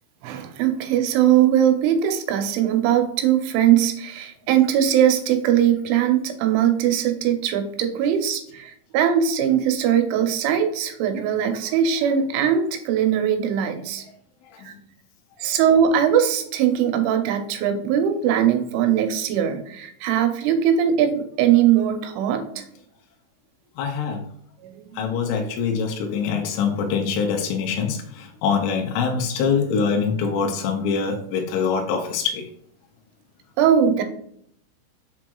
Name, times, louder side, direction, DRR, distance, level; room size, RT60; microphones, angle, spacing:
voice 1, 0.2-14.0 14.7-14.8 15.4-22.6 24.6-25.0 33.6-34.0, right 9 dB, 90° right, 6 dB, 3.2 m, -20 dB
voice 2, 23.8-24.2 25.0-28.0 28.4-32.4, left 6 dB, 85° left, 3 dB, 3.1 m, -24 dB
7.2 x 5.9 x 2.3 m, 0.68 s
omnidirectional pair, 5.3 m